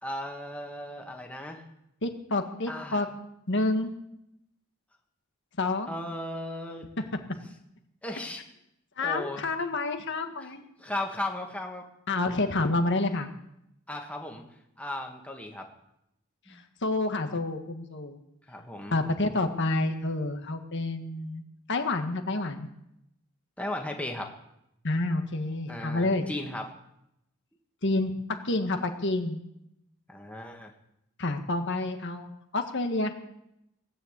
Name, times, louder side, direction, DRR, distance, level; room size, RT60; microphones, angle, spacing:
voice 1, 0.0-1.7 2.7-3.1 5.9-6.9 8.0-8.4 9.0-9.5 10.3-10.5 10.8-11.8 13.9-14.4 14.8-15.7 16.5-16.6 18.5-19.0 23.6-24.3 25.7-26.7 30.1-30.7, left 1 dB, 5° left, 2 dB, 1.8 m, -36 dB
voice 2, 2.0-3.1 3.5-3.9 5.6-5.9 7.0-7.1 9.0-10.6 12.1-13.3 16.8-18.2 18.9-21.4 21.7-22.7 24.8-26.2 27.8-29.4 31.2-33.1, left 2 dB, 60° left, 6 dB, 1.7 m, -28 dB
17.5 x 9.7 x 8.2 m, 0.81 s
head